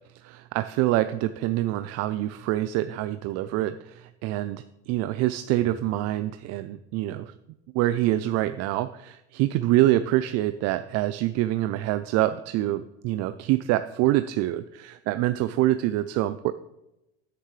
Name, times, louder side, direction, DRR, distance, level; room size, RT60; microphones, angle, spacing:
voice 1, 0.2-7.3 7.7-16.5, right 15 dB, 55° right, 11 dB, 0.5 m, -26 dB
sound 1, 5.6-7.5, left 2 dB, 5° right, 2.6 m, -52 dB
9.6 x 9.4 x 3.3 m, 0.91 s
supercardioid pair, 105°, 30 cm